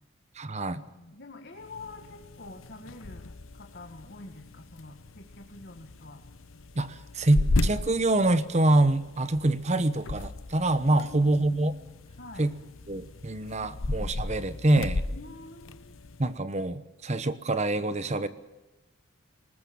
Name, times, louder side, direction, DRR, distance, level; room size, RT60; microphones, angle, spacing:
voice 1, 0.4-0.8 6.7-11.7 12.4-12.5 12.9-15.0 16.2-18.3, right 2 dB, 35° right, 13 dB, 1.0 m, -25 dB
voice 2, 0.9-6.2 10.9-11.7 12.2-12.5 13.6-14.1 15.1-16.0, left 2 dB, 50° left, 3 dB, 1.9 m, -47 dB
sound 1, 1.5-16.3, left 2 dB, 75° left, 0.8 m, -35 dB
20.0 x 20.0 x 7.1 m, 1.0 s
head